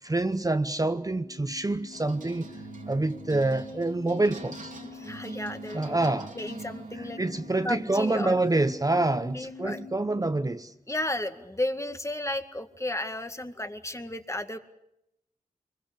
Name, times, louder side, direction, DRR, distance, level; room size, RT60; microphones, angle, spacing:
voice 1, 0.0-2.6 2.9-4.7 5.7-6.3 7.2-10.7, right 2 dB, 25° right, 0.9 m, -27 dB
sound 1, 1.0-10.6, left 5 dB, 75° left, 1.5 m, -46 dB
sound 2, 1.9-9.5, right 4 dB, 60° right, 2.8 m, -45 dB
voice 2, 4.8-6.0 6.4-7.2 7.6-8.3 9.3-9.8 10.9-14.6, left 1 dB, 20° left, 2.0 m, -33 dB
24.5 x 22.0 x 8.7 m
cardioid pair, 55°, 15 cm